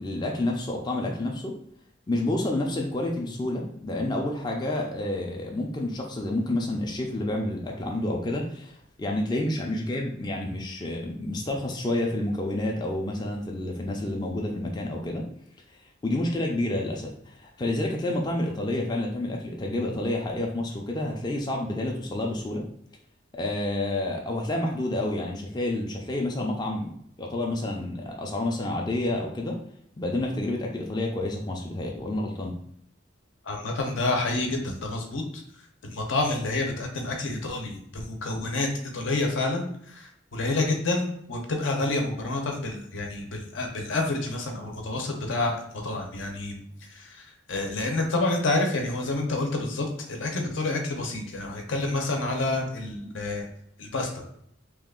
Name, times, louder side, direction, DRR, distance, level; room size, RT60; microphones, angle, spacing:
voice 1, 0.0-1.5 2.1-15.2 16.0-22.7 23.3-29.6 30.0-32.5, left 1 dB, 20° left, 0 dB, 0.3 m, -29 dB
voice 2, 33.4-35.4 35.9-46.6 46.9-53.5 53.8-54.2, left 2 dB, 80° left, 2 dB, 0.7 m, -28 dB
2.9 x 2.3 x 3.6 m, 0.69 s
head